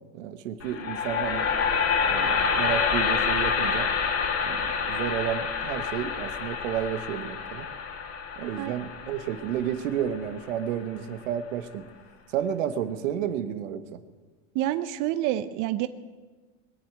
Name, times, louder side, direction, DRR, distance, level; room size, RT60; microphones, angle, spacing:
voice 1, 0.1-1.5 2.1-3.9 4.4-7.7 8.4-11.8 12.3-14.0, right 9 dB, 85° right, 10 dB, 1.3 m, -31 dB
sound 1, 0.6-10.7, left 6 dB, 40° left, 2.2 m, -28 dB
voice 2, 14.5-15.9, right 14 dB, 55° right, 12 dB, 0.8 m, -27 dB
21.0 x 7.5 x 9.0 m, 1.3 s
supercardioid pair, 115°, 38 cm